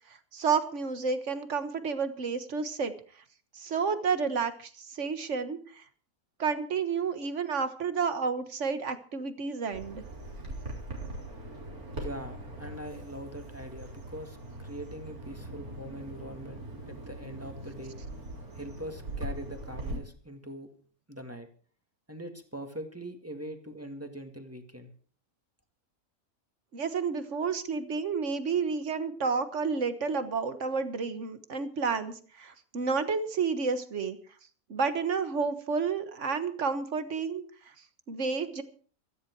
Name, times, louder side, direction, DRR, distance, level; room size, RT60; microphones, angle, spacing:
voice 1, 0.3-2.9 3.5-5.8 6.4-10.0 26.7-34.2 34.7-37.4 38.1-38.6, right 5 dB, 55° right, 11 dB, 1.6 m, -30 dB
Bird vocalization bird call bird song, 9.7-20.0, right 1 dB, 80° right, 4.0 m, -41 dB
voice 2, 12.0-18.0 18.5-20.7 21.1-21.5 22.1-24.9, right 1 dB, 10° right, 5 dB, 2.0 m, -42 dB
16.5 x 14.0 x 4.7 m, 0.43 s
omnidirectional pair, 1.5 m